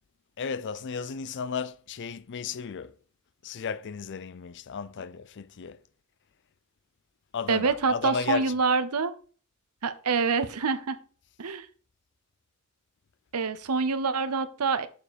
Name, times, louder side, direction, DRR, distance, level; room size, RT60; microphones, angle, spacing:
voice 1, 0.4-2.9 3.4-5.8 7.3-8.5, left 5 dB, 55° left, 0.5 m, -34 dB
voice 2, 7.5-9.1 9.8-11.0 11.4-11.7 13.3-14.9, right 4 dB, 90° right, 0.8 m, -26 dB
7.0 x 7.0 x 4.2 m
head